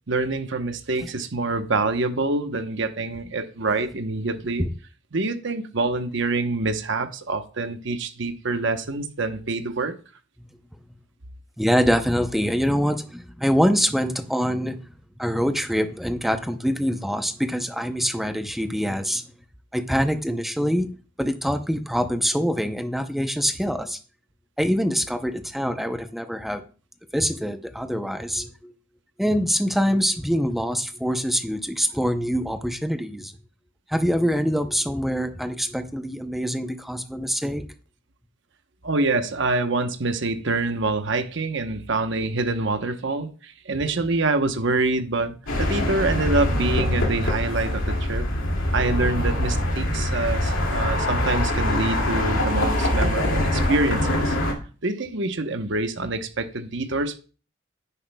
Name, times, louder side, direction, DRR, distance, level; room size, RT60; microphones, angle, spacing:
voice 1, 0.1-4.7 5.1-9.9 38.8-48.3 48.7-54.4 54.8-57.2, right 3 dB, 60° right, 1.0 m, -26 dB
voice 2, 11.6-14.8 15.2-19.2 19.7-20.9 21.2-24.0 24.6-26.6 27.1-28.7 29.2-33.3 33.9-37.7, equal, ahead, 0.6 m, -24 dB
sound 1, 45.5-54.5, left 1 dB, 85° left, 2.3 m, -24 dB
10.0 x 10.0 x 2.3 m
head